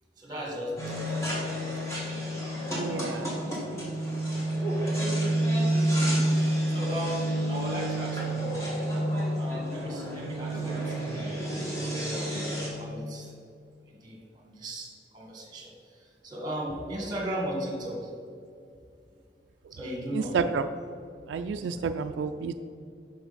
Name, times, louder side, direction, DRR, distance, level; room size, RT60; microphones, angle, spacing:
voice 1, 0.2-1.3 6.4-8.7 9.4-12.2 12.8-13.3 13.9-18.1 19.7-20.4 21.5-21.8, equal, 25° right, 0 dB, 1.5 m, -37 dB
sound 1, 0.8-12.7, right 1 dB, 15° left, 1.4 m, -29 dB
voice 2, 2.8-3.3 20.1-20.6 21.3-22.5, right 5 dB, 90° right, 8 dB, 0.3 m, -30 dB
6.1 x 6.0 x 5.0 m, 2.4 s
head